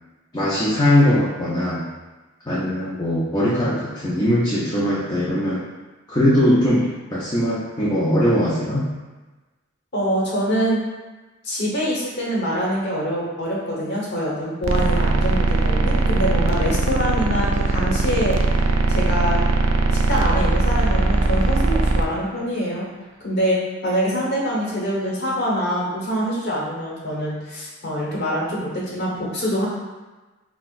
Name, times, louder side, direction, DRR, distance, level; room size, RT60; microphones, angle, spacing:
voice 1, 0.3-1.8 2.5-5.6 6.1-8.8, left 1 dB, 20° left, -9 dB, 0.6 m, -20 dB
voice 2, 9.9-10.8 11.4-18.4 18.9-19.5 20.1-22.9 23.2-23.6 23.8-29.7, equal, 60° left, -5 dB, 1.2 m, -24 dB
sound 1, 14.6-22.0, right 3 dB, 75° right, 0.4 m, -20 dB
5.7 x 2.3 x 2.5 m, 1.2 s
head